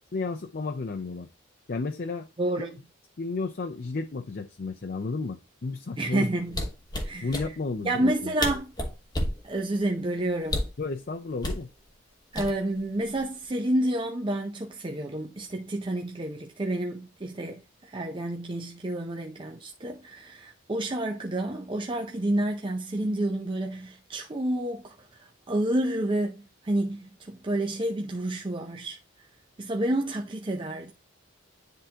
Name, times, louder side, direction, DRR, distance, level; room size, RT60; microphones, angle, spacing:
voice 1, 0.1-1.3 1.7-2.3 2.6-2.7 3.2-6.3 7.2-8.3 10.8-11.7, left 3 dB, 50° left, 0.5 m, -32 dB
voice 2, 2.4-2.8 6.0-6.6 7.0-7.4 7.8-8.7 9.4-10.6 12.3-29.0 29.6-30.9, right 1 dB, 25° right, 0.6 m, -29 dB
sound 1, 6.5-7.5 8.1-8.2 8.4-9.4 10.4-10.8 11.4-11.6 12.4-12.8 13.2-13.4, left 1 dB, 20° left, 1.1 m, -30 dB
10.0 x 3.7 x 2.8 m
head